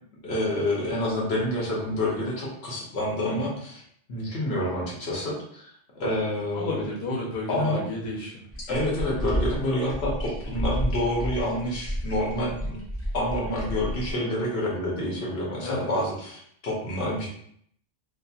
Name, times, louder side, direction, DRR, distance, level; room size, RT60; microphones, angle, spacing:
voice 1, 0.2-3.8 4.1-6.8 7.5-7.9 8.7-12.8 13.1-17.3, left 1 dB, 85° left, -4 dB, 1.1 m, -28 dB
voice 2, 3.2-3.5 6.5-8.4 15.6-15.9, left 2 dB, 45° left, -5 dB, 0.8 m, -32 dB
sound 1, 8.5-14.1, equal, 15° left, 0.5 m, -31 dB
2.8 x 2.4 x 2.3 m, 0.67 s
omnidirectional pair, 1.0 m